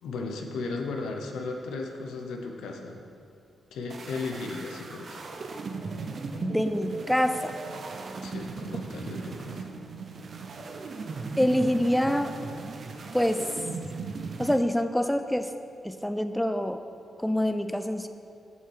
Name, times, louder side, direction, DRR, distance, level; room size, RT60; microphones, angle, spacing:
voice 1, 0.0-3.0 3.7-5.2 8.2-9.7, left 3 dB, 90° left, 2 dB, 0.7 m, -35 dB
sound 1, 3.9-14.6, right 4 dB, 55° right, 0.6 m, -37 dB
voice 2, 6.4-7.6 11.4-12.3 13.1-13.4 14.4-15.5 15.8-16.8 17.2-18.1, equal, 5° left, 8 dB, 0.4 m, -26 dB
7.3 x 5.6 x 4.7 m, 2.4 s
cardioid pair, 65°, 0 cm